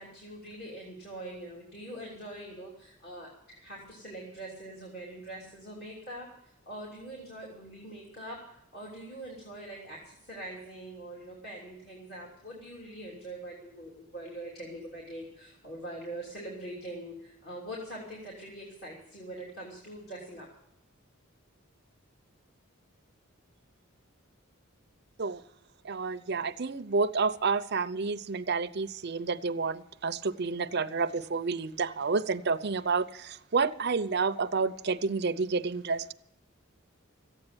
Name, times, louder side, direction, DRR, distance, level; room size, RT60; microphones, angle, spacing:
voice 1, 0.0-6.3 6.6-8.4 8.7-20.5, right 1 dB, 45° left, -4 dB, 3.2 m, -43 dB
voice 2, 25.8-36.1, right 4 dB, 50° right, 11 dB, 0.6 m, -29 dB
14.5 x 8.9 x 8.9 m, 0.78 s
head